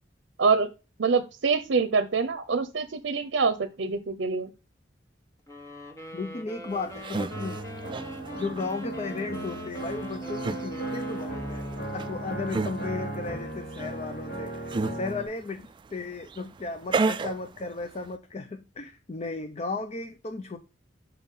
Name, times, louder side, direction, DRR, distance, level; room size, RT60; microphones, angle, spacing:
voice 1, 1.0-4.5, right 4 dB, 80° right, 0.6 m, -25 dB
sound 1, 5.5-12.3, equal, 15° left, 1.2 m, -43 dB
voice 2, 6.1-7.6 8.4-11.6 11.9-20.6, left 3 dB, 35° left, 0.6 m, -35 dB
sound 2, 6.7-18.2, right 3 dB, 25° right, 0.3 m, -35 dB
sound 3, 7.3-15.3, right 1 dB, 60° left, 4.3 m, -36 dB
5.7 x 5.6 x 3.6 m
head